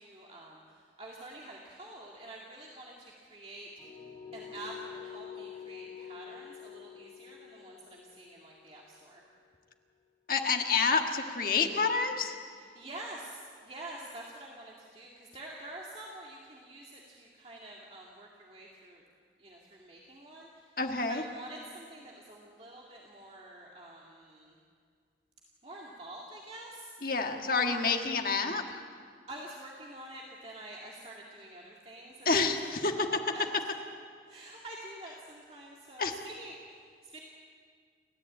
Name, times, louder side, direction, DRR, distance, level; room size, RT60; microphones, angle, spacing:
voice 1, 0.0-3.9 4.3-9.2 12.6-19.0 19.4-20.7 21.0-24.5 25.6-27.0 27.6-27.9 29.3-33.0 33.3-33.5 34.3-37.2, right 1 dB, 35° right, -3 dB, 2.1 m, -47 dB
sound 1, 3.8-9.6, left 8 dB, 20° left, 7.0 m, -47 dB
voice 2, 10.3-12.4 20.8-21.2 27.0-28.7 32.3-32.6 32.8-33.1 36.0-36.2, left 4 dB, 55° left, 4 dB, 1.7 m, -28 dB
29.5 x 14.0 x 8.7 m, 2.1 s
head